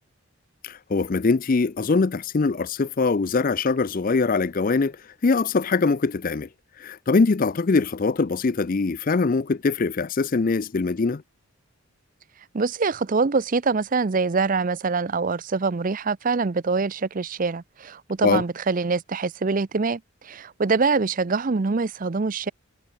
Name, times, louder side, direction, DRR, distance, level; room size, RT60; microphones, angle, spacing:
voice 1, 0.6-5.0 5.2-6.5 6.8-11.2 18.2-18.4, left 4 dB, 40° left, 0.4 m, -22 dB
voice 2, 12.5-22.5, right 4 dB, 35° right, 0.5 m, -24 dB
head